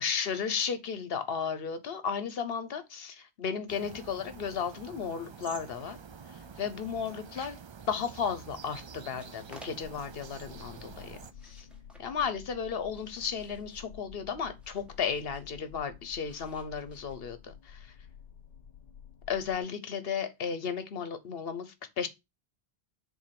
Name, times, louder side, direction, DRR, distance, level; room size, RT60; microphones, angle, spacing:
voice 1, 0.0-6.0 6.6-7.6 7.9-11.2 11.4-11.7 12.0-17.9 19.3-22.1, left 6 dB, 65° left, 1.1 m, -34 dB
sound 1, 3.7-11.3, right 6 dB, 50° right, 0.3 m, -48 dB
sound 2, 8.9-10.2 11.2-12.1 12.6-13.9 14.6-15.5 16.2-17.4, equal, ahead, 1.4 m, -56 dB
sound 3, 9.8-19.6, left 8 dB, 50° left, 0.6 m, -51 dB
7.1 x 2.8 x 5.8 m
omnidirectional pair, 1.1 m